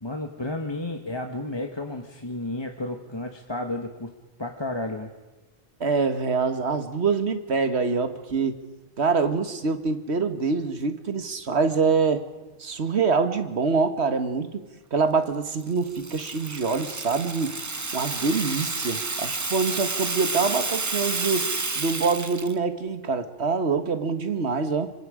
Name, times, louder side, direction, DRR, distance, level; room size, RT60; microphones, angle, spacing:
voice 1, 0.0-4.1 4.4-5.1, left 2 dB, 25° left, 4 dB, 1.3 m, -32 dB
voice 2, 5.8-8.6 9.0-12.2 12.6-17.6 17.9-21.5 21.8-24.9, right 4 dB, 65° right, 9 dB, 1.7 m, -25 dB
Rattle (instrument), 15.6-22.5, right 3 dB, 20° right, 0.5 m, -30 dB
25.5 x 24.5 x 5.0 m, 1.2 s
omnidirectional pair, 1.2 m